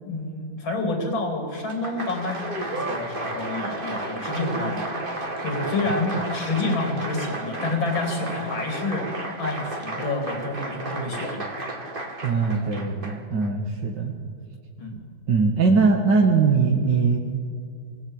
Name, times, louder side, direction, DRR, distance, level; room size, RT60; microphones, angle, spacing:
voice 1, 0.1-4.8 5.4-9.1 9.4-11.4 14.8-15.0, left 2 dB, 70° left, 3 dB, 3.8 m, -28 dB
Applause, 1.6-13.5, right 2 dB, 25° right, 2.2 m, -32 dB
voice 2, 12.2-14.1 15.3-17.2, right 4 dB, 55° right, 0 dB, 2.4 m, -21 dB
27.5 x 21.0 x 9.0 m, 2.2 s
omnidirectional pair, 2.3 m